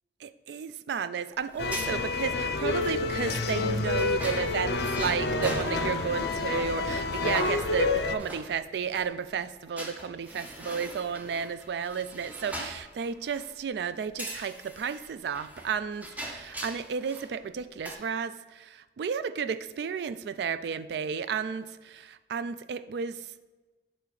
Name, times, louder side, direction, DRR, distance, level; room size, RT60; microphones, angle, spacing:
voice 1, 0.2-23.2, right 6 dB, 70° right, 14 dB, 0.3 m, -33 dB
sound 1, 1.4-6.4 6.8-6.9 7.1-9.1 9.8-13.6 14.2-17.4 17.6-18.0, equal, 10° right, 0.6 m, -41 dB
sound 2, 1.6-8.2, left 3 dB, 65° left, 0.5 m, -29 dB
6.8 x 3.8 x 4.7 m, 1.2 s
head